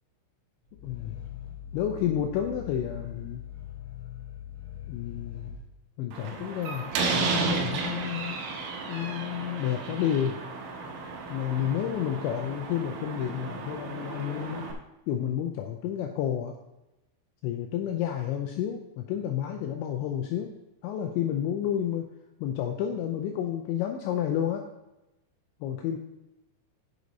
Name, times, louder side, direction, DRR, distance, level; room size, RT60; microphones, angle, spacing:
Growling, 0.7-5.6, left 11 dB, 40° left, 2.5 m, -41 dB
voice 1, 0.8-1.2 1.7-3.4 4.9-5.6 6.0-8.4 8.9-10.4 11.3-14.7 15.1-16.6 17.4-20.5 20.8-22.1 22.4-24.7 25.6-26.0, left 10 dB, 85° left, 4 dB, 2.6 m, -30 dB
Slam, 6.1-14.7, right 4 dB, 75° right, 3.4 m, -33 dB
Wind instrument woodwind instrument, 7.1-14.4, left 1 dB, 10° left, 1.4 m, -50 dB
8.2 x 8.0 x 4.0 m, 0.95 s
omnidirectional pair, 5.9 m